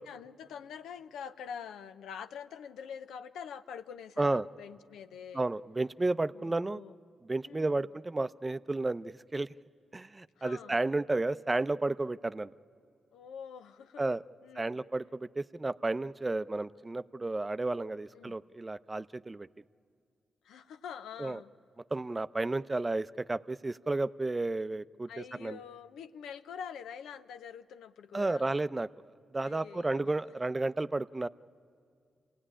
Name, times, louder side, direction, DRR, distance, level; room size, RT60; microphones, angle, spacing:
voice 1, 0.1-5.5 6.3-6.9 7.4-7.9 10.4-10.8 13.1-14.8 18.1-18.4 20.4-21.5 25.1-28.5 29.4-30.1, left 7 dB, 85° left, 10 dB, 0.6 m, -45 dB
voice 2, 5.3-6.8 7.2-9.5 9.9-12.5 14.0-14.2 14.6-19.5 21.2-21.4 21.9-25.6 28.1-28.9 29.3-31.3, right 2 dB, 30° right, 15 dB, 0.5 m, -32 dB
27.0 x 16.5 x 10.0 m, 2.2 s
supercardioid pair, 45°, 0 cm